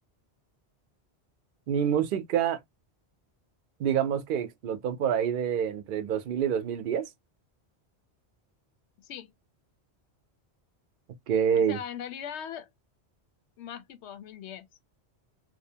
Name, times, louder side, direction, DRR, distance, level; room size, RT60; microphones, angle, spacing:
voice 1, 1.7-2.6 3.8-7.1 11.3-11.8, right 8 dB, 60° right, 0.7 m, -27 dB
voice 2, 9.0-9.3 11.5-12.7 13.6-14.7, left 8 dB, 85° left, 0.9 m, -40 dB
2.7 x 2.1 x 2.7 m
omnidirectional pair, 1.1 m